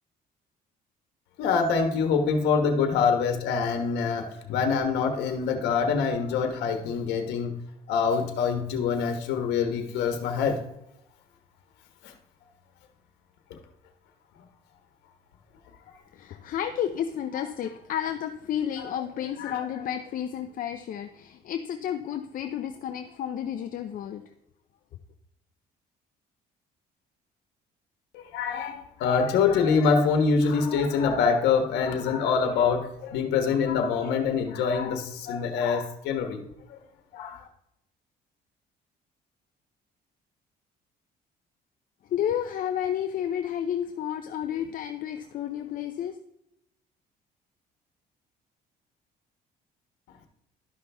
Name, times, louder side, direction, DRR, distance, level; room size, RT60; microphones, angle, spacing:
voice 1, 1.4-7.5 7.9-10.6 12.0-12.1 18.8-18.9 19.4-19.6 28.1-36.4 36.7-36.8 37.1-37.4, left 5 dB, 90° left, 5 dB, 1.2 m, -25 dB
voice 2, 16.1-24.2 42.0-46.2, left 9 dB, 55° left, 8 dB, 0.6 m, -31 dB
12.0 x 5.7 x 3.4 m, 0.80 s
cardioid pair, 110°, 17 cm